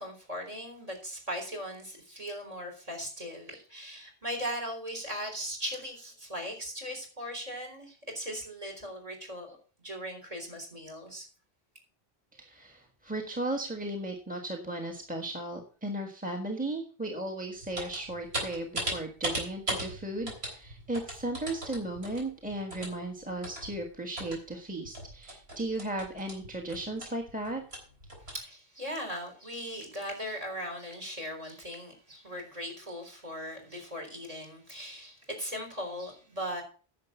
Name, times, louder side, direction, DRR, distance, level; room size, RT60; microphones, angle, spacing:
voice 1, 0.0-9.6 9.8-11.3 28.3-36.6, equal, 35° right, 4.0 m, -38 dB
voice 2, 12.3-27.6, right 1 dB, 10° right, 1.5 m, -36 dB
sound 1, 17.6-24.5 24.9-28.4, right 1 dB, 80° right, 4.0 m, -38 dB
10.5 x 6.8 x 6.9 m
omnidirectional pair, 1.1 m